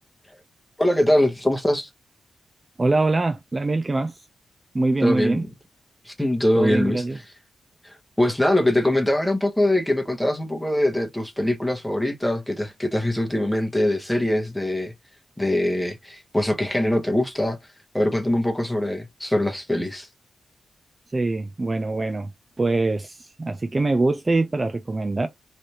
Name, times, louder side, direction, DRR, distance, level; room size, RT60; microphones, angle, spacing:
voice 1, 0.8-1.9 5.0-5.4 6.0-7.0 7.8-14.9 15.4-17.6 17.9-20.1, left 1 dB, 5° left, 1.0 m, -22 dB
voice 2, 2.8-4.2 4.7-5.4 6.6-7.2 21.1-22.3 22.6-25.3, right 2 dB, 25° right, 0.4 m, -23 dB
3.3 x 2.6 x 2.8 m
cardioid pair, 90°, 0 cm